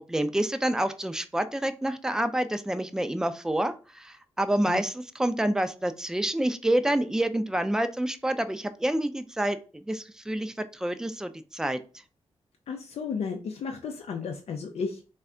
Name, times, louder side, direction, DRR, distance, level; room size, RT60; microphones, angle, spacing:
voice 1, 0.1-11.8, right 1 dB, 5° right, 10 dB, 0.4 m, -28 dB
voice 2, 12.7-15.1, left 5 dB, 75° left, 3 dB, 0.4 m, -33 dB
3.4 x 2.2 x 3.6 m, 0.36 s
cardioid pair, 85°, 11 cm